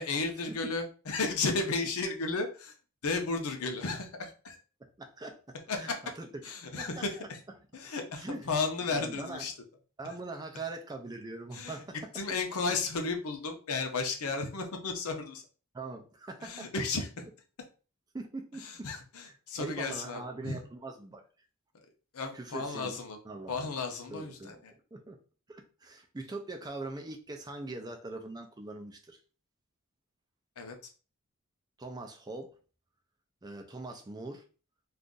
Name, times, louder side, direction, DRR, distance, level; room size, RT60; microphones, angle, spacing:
voice 1, 0.0-2.7 3.0-4.6 5.7-6.0 6.4-7.4 7.7-9.5 11.5-11.7 12.1-15.4 16.4-17.1 18.6-20.6 22.1-23.2 23.5-24.7 30.6-30.8, left 4 dB, 75° left, 0.7 m, -34 dB
voice 2, 4.8-6.3 6.6-7.3 8.2-8.5 8.9-9.4 10.0-12.2 15.7-16.7 18.1-18.9 19.2-21.3 22.3-23.0 23.2-23.7 24.1-24.6 24.9-25.2 25.5-29.2 31.8-32.5 33.4-34.4, right 2 dB, 20° right, 0.4 m, -42 dB
2.5 x 2.4 x 3.7 m
head